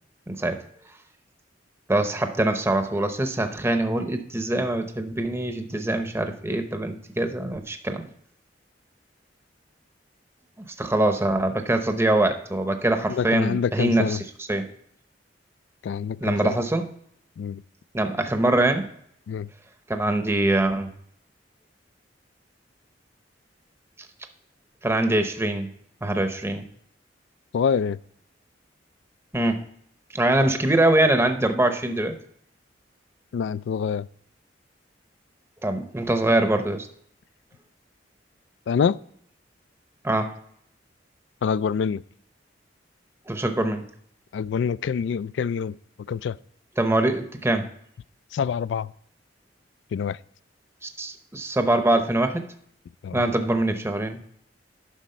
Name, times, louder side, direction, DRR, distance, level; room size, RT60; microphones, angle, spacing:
voice 1, 0.3-0.6 1.9-8.0 10.6-14.2 14.5-14.7 16.2-16.9 17.9-18.9 19.9-20.9 24.8-25.7 26.0-26.7 29.3-29.7 30.1-32.2 35.6-36.9 40.0-40.3 43.3-43.8 46.8-47.7 50.8-52.4 53.1-54.3, right 1 dB, 15° right, 7 dB, 0.7 m, -23 dB
voice 2, 13.1-14.2 15.8-16.5 17.4-17.6 19.3-19.5 27.5-28.0 33.3-34.1 38.7-39.0 41.4-42.0 44.3-45.7 46.1-46.4 48.3-48.9 49.9-50.2 53.0-53.2, left 6 dB, 70° left, 19 dB, 0.3 m, -26 dB
10.0 x 6.2 x 4.3 m, 0.68 s
head